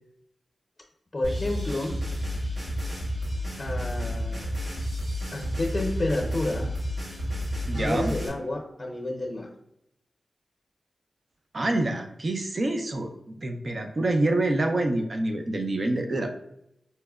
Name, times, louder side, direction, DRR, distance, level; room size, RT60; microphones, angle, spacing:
voice 1, 1.1-2.0 3.6-4.5 5.3-6.7 7.7-9.5, left 1 dB, 45° left, 1 dB, 0.7 m, -30 dB
sound 1, 1.2-8.3, equal, 85° right, 1.4 m, -31 dB
voice 2, 7.6-8.1 11.5-16.3, right 2 dB, 55° right, 5 dB, 0.5 m, -26 dB
5.4 x 2.1 x 2.3 m, 0.81 s
cardioid pair, 40°, 0 cm